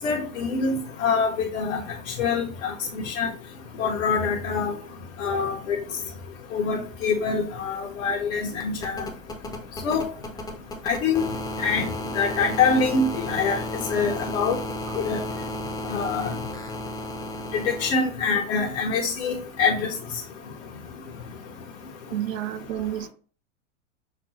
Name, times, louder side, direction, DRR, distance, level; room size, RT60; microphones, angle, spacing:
voice 1, 0.0-1.8 2.2-2.7 3.0-3.3 3.8-4.8 5.2-5.8 6.5-9.0 9.8-10.1 10.8-11.3 11.6-13.6 13.9-14.6 15.0-15.2 15.9-16.3 17.5-19.9, left 5 dB, 70° left, -1 dB, 1.0 m, -25 dB
sound 1, 7.1-17.9 19.3-19.4, left 1 dB, 10° left, 0.6 m, -34 dB
voice 2, 22.1-23.1, right 12 dB, 80° right, 13 dB, 0.5 m, -30 dB
6.1 x 2.2 x 2.7 m, 0.40 s
hypercardioid pair, 105°, 39 cm